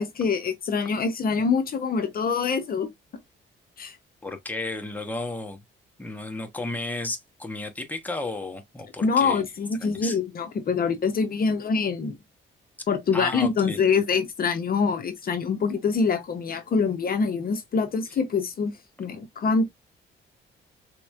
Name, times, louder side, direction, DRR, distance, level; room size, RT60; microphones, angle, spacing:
voice 1, 0.0-2.9 3.8-4.0 9.0-12.1 12.9-18.7 19.0-19.7, left 5 dB, 50° left, 0.7 m, -25 dB
voice 2, 4.2-5.6 6.0-9.4 9.8-10.2 13.1-13.8, left 2 dB, 10° left, 1.0 m, -33 dB
4.1 x 3.0 x 2.3 m
cardioid pair, 90°, 20 cm